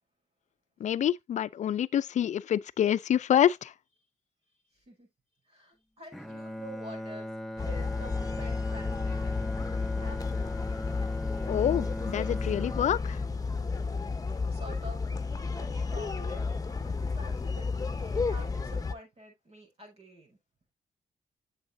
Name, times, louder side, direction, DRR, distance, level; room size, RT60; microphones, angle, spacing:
voice 1, 0.8-3.7 11.5-13.2, left 10 dB, 65° left, 0.5 m, -27 dB
voice 2, 4.7-5.1 5.5-7.3 7.6-9.3 10.0-10.5 14.5-15.0 15.4-17.8 18.1-20.4, right 1 dB, 50° right, 5.9 m, -48 dB
Bowed string instrument, 6.1-14.3, left 1 dB, ahead, 1.0 m, -40 dB
sound 1, 7.6-18.9, left 4 dB, 30° left, 1.1 m, -32 dB
8.6 x 7.3 x 2.7 m
cardioid pair, 65°, 13 cm